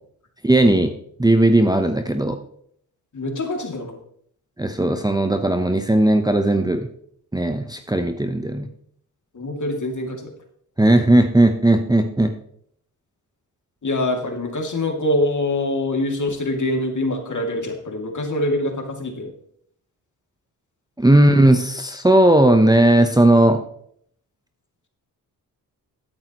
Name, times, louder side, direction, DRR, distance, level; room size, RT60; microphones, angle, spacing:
voice 1, 0.4-0.9 1.2-2.4 4.6-6.9 7.3-8.7 10.8-12.3 21.0-23.6, right 1 dB, 10° right, 6 dB, 0.9 m, -16 dB
voice 2, 3.1-4.0 9.3-10.3 13.8-19.3, left 1 dB, 45° left, 3 dB, 2.6 m, -24 dB
12.5 x 9.3 x 3.0 m, 0.66 s
supercardioid pair, 55°, 41 cm